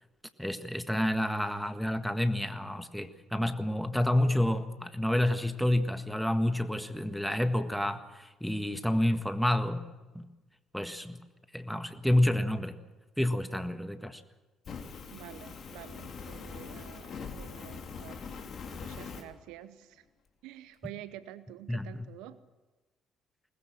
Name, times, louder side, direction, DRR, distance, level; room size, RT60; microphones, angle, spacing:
voice 1, 0.4-9.9 10.1-10.3 10.7-11.2 11.5-12.8 13.2-14.2 21.7-21.9, left 1 dB, 5° left, 9 dB, 1.6 m, -29 dB
Fire, 14.6-19.2, left 5 dB, 50° left, 3.0 m, -42 dB
voice 2, 15.1-18.2 18.8-20.0 20.4-22.4, right 13 dB, 75° right, 15 dB, 0.9 m, -48 dB
21.5 x 20.0 x 7.5 m, 1.2 s
hypercardioid pair, 50°, 0 cm